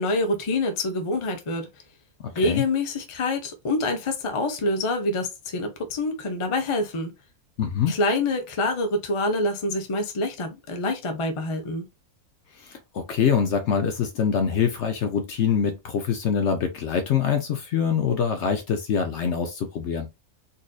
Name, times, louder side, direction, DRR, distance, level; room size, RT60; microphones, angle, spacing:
voice 1, 0.0-1.7 2.3-7.1 7.9-11.8, left 2 dB, 50° left, 0.3 m, -26 dB
voice 2, 2.2-2.6 7.6-7.9 12.6-20.1, left 7 dB, 65° left, 0.7 m, -24 dB
4.0 x 2.5 x 2.3 m
omnidirectional pair, 1.6 m